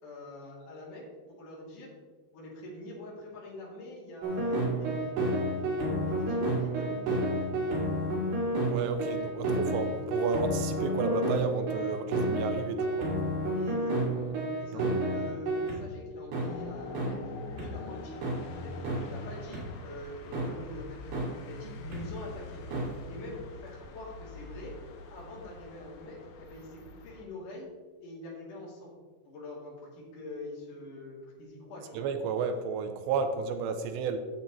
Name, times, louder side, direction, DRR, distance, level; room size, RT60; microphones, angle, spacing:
voice 1, 0.0-1.9 2.3-7.5 13.4-14.3 14.6-17.2 17.4-21.1 21.4-22.6 23.1-24.7 25.1-27.7 28.0-28.9 29.2-32.1, left 1 dB, 50° left, -4 dB, 3.3 m, -44 dB
sound 1, 4.2-15.8 16.3-16.5 16.9-17.1 17.6-17.7 18.2-18.4 18.8-19.0 19.5-19.6 20.3-20.5 21.1-21.3 21.9-22.0 22.7-22.8, right 1 dB, 65° right, 3.8 m, -30 dB
voice 2, 8.6-13.1 14.7-14.8 31.9-34.3, right 5 dB, 85° right, 7 dB, 2.9 m, -32 dB
sound 2, 16.5-27.2, left 2 dB, 80° left, 3.3 m, -44 dB
9.0 x 7.5 x 4.0 m, 1.4 s
omnidirectional pair, 5.3 m